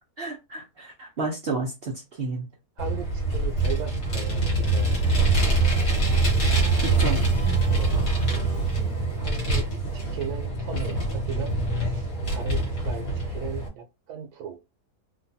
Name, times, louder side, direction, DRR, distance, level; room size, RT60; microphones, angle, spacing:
voice 1, 0.2-2.5 6.8-7.2, right 3 dB, 60° right, 0.6 m, -31 dB
Vehicle, 2.8-13.7, right 2 dB, 65° left, 1.3 m, -24 dB
voice 2, 2.8-4.9 7.7-7.9 8.8-9.7 9.9-11.6 11.8-14.6, right 8 dB, 90° right, 1.2 m, -37 dB
sound 1, 4.3-9.1, right 2 dB, 35° right, 1.6 m, -46 dB
3.0 x 2.2 x 2.6 m
omnidirectional pair, 1.7 m